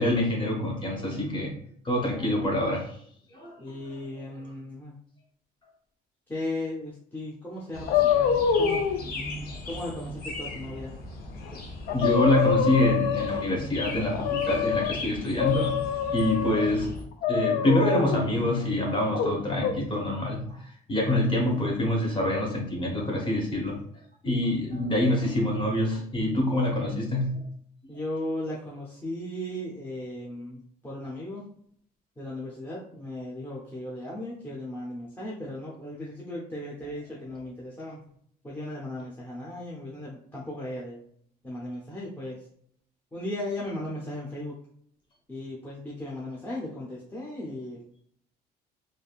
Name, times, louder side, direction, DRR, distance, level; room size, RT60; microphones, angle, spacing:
voice 1, 0.0-1.6 1.8-2.9 3.3-3.5 9.2-9.5 11.9-15.8 16.1-16.9 17.3-23.8 24.2-27.4, left 1 dB, 30° left, 0 dB, 1.0 m, -26 dB
voice 2, 3.6-5.0 6.3-8.9 9.6-11.0 11.5-11.6 27.9-31.4 32.2-38.0 38.4-41.0 41.4-42.5 43.1-44.6 45.3-47.8, left 1 dB, 10° left, -5 dB, 0.7 m, -36 dB
sound 1, 7.7-17.0, left 2 dB, 60° left, 0.8 m, -39 dB
sound 2, 7.9-9.0 11.4-11.5 11.9-13.6 14.1-14.9 15.4-16.7 17.2-18.3 19.1-19.7, left 7 dB, 80° left, 0.4 m, -25 dB
3.4 x 2.5 x 2.3 m, 0.64 s
cardioid pair, 110°, 17 cm